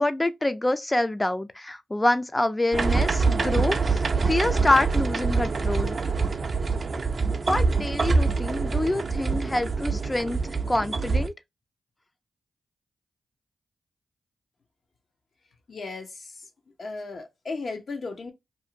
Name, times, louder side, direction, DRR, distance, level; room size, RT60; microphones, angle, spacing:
voice 1, 0.0-6.0 6.7-6.8 7.3-11.3, left 1 dB, 20° left, 0.4 m, -26 dB
sound 1, 2.7-11.3, right 4 dB, 50° right, 0.4 m, -25 dB
voice 2, 15.7-16.5 16.8-18.3, left 3 dB, 60° left, 0.8 m, -35 dB
2.6 x 2.4 x 2.8 m
supercardioid pair, 45°, 0 cm